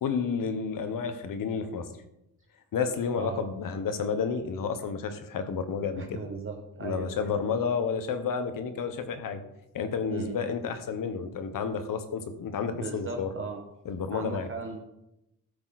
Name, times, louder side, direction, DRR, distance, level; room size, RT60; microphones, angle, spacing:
voice 1, 0.0-1.9 2.7-6.2 6.8-9.4 9.7-13.3 13.8-14.5, left 6 dB, 70° left, 9 dB, 1.3 m, -31 dB
voice 2, 5.9-7.1 10.1-10.4 12.7-13.6 14.1-14.8, right 4 dB, 40° right, 2 dB, 1.3 m, -37 dB
13.5 x 6.3 x 4.3 m, 0.85 s
cardioid pair, 85°, 34 cm